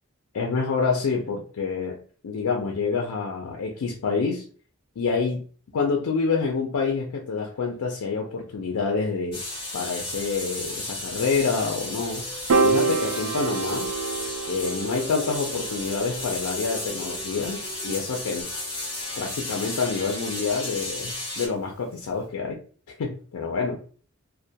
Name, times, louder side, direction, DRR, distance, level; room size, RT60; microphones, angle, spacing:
voice 1, 0.3-4.4 5.0-5.4 5.7-9.4 9.7-12.2 12.6-13.9 14.5-18.5 19.2-22.6 23.0-23.8, left 4 dB, 90° left, 1 dB, 0.4 m, -27 dB
sound 1, 9.3-21.5, left 2 dB, 25° left, 0.9 m, -34 dB
sound 2, 11.7-18.4, right 1 dB, ahead, 0.4 m, -47 dB
Piano, 12.5-18.9, right 4 dB, 65° right, 0.3 m, -28 dB
2.2 x 2.2 x 2.7 m, 0.42 s
head